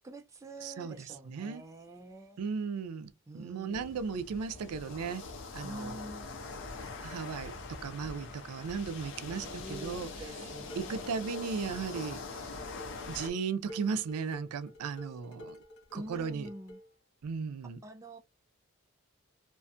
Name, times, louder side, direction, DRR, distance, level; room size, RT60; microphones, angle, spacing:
voice 1, 0.0-2.4 3.3-4.0 5.6-6.3 9.2-11.3 15.9-16.8 17.8-18.2, right 1 dB, 15° right, 0.3 m, -46 dB
voice 2, 0.6-0.9 1.3-1.6 2.4-5.3 5.5-6.0 7.0-7.5 7.8-10.1 10.8-12.6 13.1-15.6 15.9-16.5 17.2-17.8, right 5 dB, 90° right, 0.4 m, -36 dB
sound 1, 3.7-13.3, left 3 dB, 55° left, 0.6 m, -43 dB
Dishes pots and pans, 10.3-16.9, equal, 85° left, 1.1 m, -50 dB
2.5 x 2.3 x 2.5 m
head